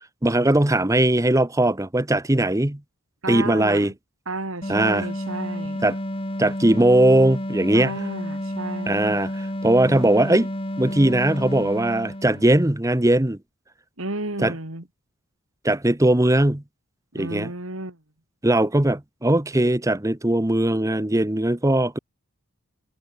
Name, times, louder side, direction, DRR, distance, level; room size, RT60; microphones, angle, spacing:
voice 1, 0.2-2.8 3.3-3.9 4.7-5.1 5.8-6.0 6.4-7.9 8.9-10.5 10.8-13.4 14.4-14.5 15.6-16.6 17.1-17.5 18.4-22.0, right 1 dB, 15° right, 0.9 m, -19 dB
voice 2, 3.2-3.9 4.3-5.8 7.7-9.2 14.0-14.8 17.1-18.0, right 2 dB, 65° right, 3.4 m, -32 dB
sound 1, 4.6-12.7, equal, 25° left, 6.2 m, -30 dB
head